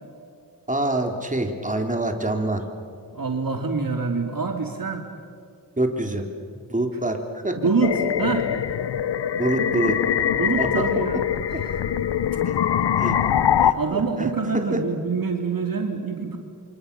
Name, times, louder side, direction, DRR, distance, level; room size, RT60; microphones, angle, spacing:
voice 1, 0.7-2.6 5.8-6.3 6.7-7.6 9.4-10.0 10.6-10.9 12.5-12.6 13.0-13.2 13.6-14.8, right 2 dB, 20° right, 3 dB, 3.6 m, -26 dB
voice 2, 3.1-5.0 7.6-8.5 10.3-11.2 11.6-11.8 13.7-16.4, right 4 dB, 55° right, 3 dB, 2.7 m, -25 dB
sound 1, 7.8-13.7, left 9 dB, 75° left, 0.9 m, -23 dB
28.0 x 24.5 x 6.9 m, 2.3 s
cardioid pair, 40°, 41 cm